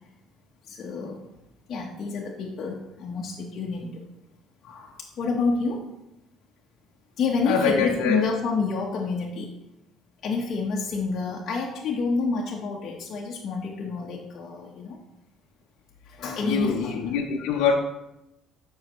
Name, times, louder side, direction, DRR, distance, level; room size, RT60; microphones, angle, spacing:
voice 1, 0.7-1.3 1.7-4.0 4.6-5.9 7.2-9.5 10.2-15.0 16.1-16.9 17.4-17.5, left 4 dB, 45° left, 1.2 m, -28 dB
voice 2, 7.4-8.3 16.4-17.8, left 6 dB, 85° left, 0.8 m, -24 dB
13.0 x 5.7 x 3.1 m
cardioid pair, 125°, 0 cm